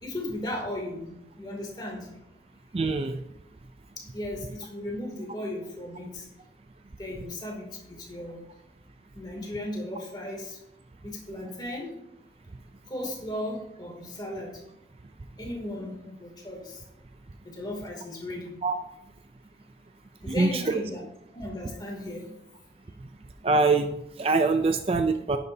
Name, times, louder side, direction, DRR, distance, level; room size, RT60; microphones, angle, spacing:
voice 1, 0.0-1.1 1.4-2.1 4.0-6.2 7.0-8.4 9.1-10.6 11.0-11.9 12.9-14.5 15.4-16.8 17.4-18.6 20.2-21.0 21.3-22.2, left 1 dB, 25° left, -1 dB, 2.6 m, -36 dB
voice 2, 2.7-3.2 18.6-18.8 20.3-20.8 23.4-25.4, right 3 dB, 35° right, 8 dB, 0.4 m, -24 dB
11.0 x 9.5 x 2.7 m, 0.86 s
head